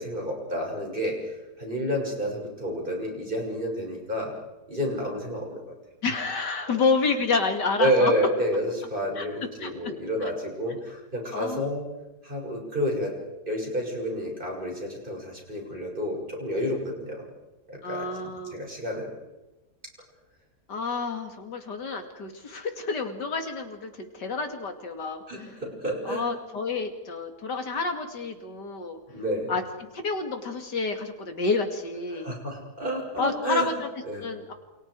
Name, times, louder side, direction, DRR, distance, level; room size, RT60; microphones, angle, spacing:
voice 1, 0.0-4.3 4.7-5.7 7.8-11.8 12.2-13.2 13.5-17.2 17.7-18.1 18.4-19.1 25.3-26.2 29.1-29.5 32.1-33.7 34.1-34.3, equal, 30° right, 0 dB, 6.7 m, -29 dB
voice 2, 6.0-8.1 9.2-9.3 9.6-9.7 10.2-10.3 11.3-11.7 16.5-16.7 17.8-18.7 20.7-25.2 26.0-29.0 29.5-32.3 33.2-34.5, left 4 dB, 80° left, 5 dB, 3.2 m, -29 dB
29.0 x 28.0 x 4.9 m, 1.1 s
omnidirectional pair, 1.8 m